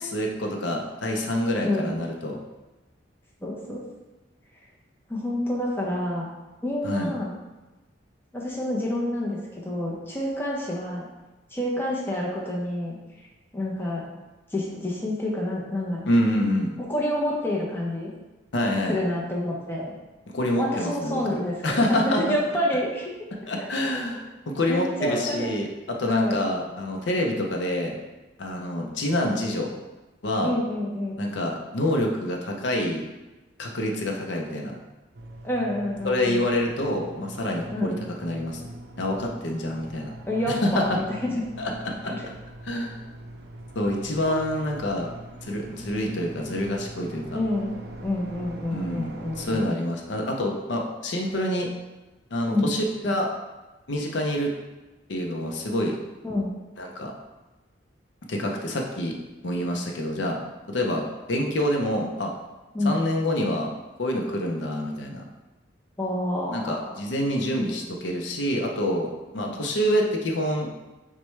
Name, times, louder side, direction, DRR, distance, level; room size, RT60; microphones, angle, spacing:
voice 1, 0.0-2.4 6.8-7.1 16.1-16.7 18.5-19.0 20.3-22.2 23.5-28.0 28.4-29.7 30.2-30.5 31.2-33.0 33.6-34.8 36.0-37.9 38.2-38.6 39.0-40.1 40.5-41.0 41.6-42.1 42.6-42.9 43.8-45.1 45.4-47.4 48.7-49.1 49.4-51.7 52.3-53.3 53.9-54.5 55.1-56.0 56.8-57.1 58.3-59.2 59.4-60.4 60.7-62.3 62.8-63.7 64.0-65.2 66.5-70.7, left 1 dB, 70° left, 1 dB, 0.6 m, -27 dB
voice 2, 1.6-1.9 3.4-3.8 5.1-6.3 6.6-7.3 8.3-11.0 11.5-13.0 13.5-14.0 14.5-16.1 16.8-18.1 18.9-19.9 20.6-23.1 24.7-25.5 26.1-26.4 30.4-31.1 35.4-36.5 37.7-37.9 40.3-41.3 42.1-42.2 44.3-44.7 47.3-49.7 52.5-52.7 56.2-56.5 62.7-63.0 66.0-67.0 69.4-69.5, left 1 dB, 10° left, -4 dB, 0.6 m, -28 dB
sound 1, 35.1-49.7, right 1 dB, 55° right, 0.5 m, -42 dB
6.0 x 2.2 x 3.2 m, 1.1 s
head